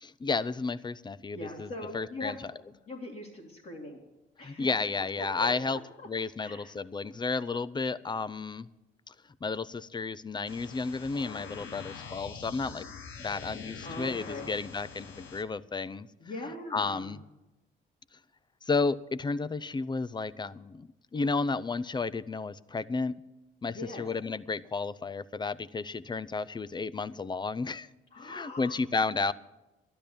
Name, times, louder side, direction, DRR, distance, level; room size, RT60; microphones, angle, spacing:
voice 1, 0.0-2.5 4.4-5.8 6.1-8.7 9.1-9.2 9.4-12.9 13.2-16.1 16.7-17.2 18.7-23.1 23.6-27.9 28.2-29.3, left 4 dB, 20° left, 19 dB, 0.5 m, -32 dB
voice 2, 1.3-2.3 2.9-4.0 4.4-4.7 5.2-5.5 6.4-6.7 13.8-14.5 16.2-17.1 23.7-24.0 28.1-28.7, left 2 dB, 50° left, -4 dB, 2.5 m, -41 dB
sound 1, 10.5-15.4, left 6 dB, 90° left, 1.4 m, -44 dB
12.5 x 10.5 x 6.9 m, 1.0 s
cardioid pair, 90°, 20 cm